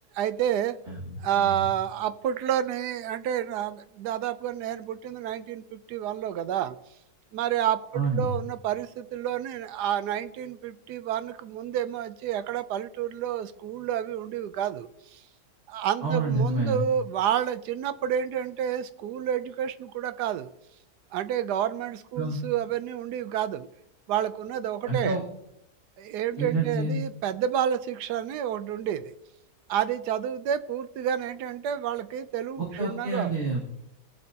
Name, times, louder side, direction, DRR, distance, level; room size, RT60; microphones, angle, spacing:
voice 1, 0.1-0.8 1.2-6.8 7.3-15.2 15.7-20.5 21.1-23.7 24.1-25.2 26.0-29.1 29.7-33.3, right 10 dB, 80° right, 13 dB, 1.2 m, -29 dB
voice 2, 0.9-1.6 7.9-8.3 16.0-16.9 22.2-22.4 24.9-25.2 26.4-27.0 32.6-33.6, right 3 dB, 45° right, -4 dB, 2.3 m, -28 dB
20.0 x 7.8 x 2.8 m, 0.80 s
omnidirectional pair, 1.8 m